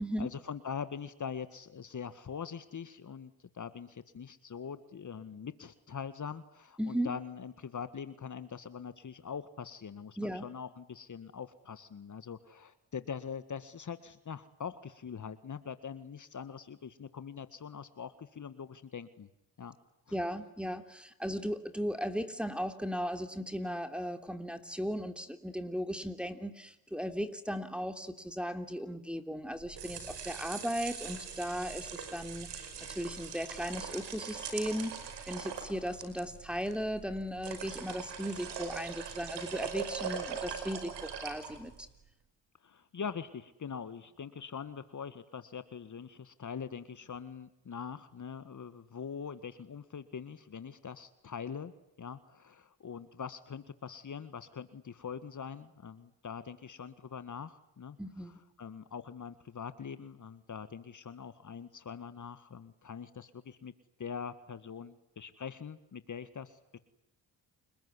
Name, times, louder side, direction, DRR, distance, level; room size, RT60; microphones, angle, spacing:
voice 1, 0.0-19.3 19.6-19.8 20.1-20.2 42.6-51.7 52.0-58.0 58.3-63.7 64.0-66.8, left 6 dB, 45° left, 12 dB, 1.8 m, -43 dB
voice 2, 6.8-7.1 10.2-10.4 20.1-34.9 35.3-41.7 58.0-58.4, equal, ahead, 9 dB, 3.1 m, -36 dB
sound 1, 29.6-41.9, right 7 dB, 80° right, 5.4 m, -42 dB
29.5 x 20.5 x 9.8 m, 0.87 s
cardioid pair, 65°, 41 cm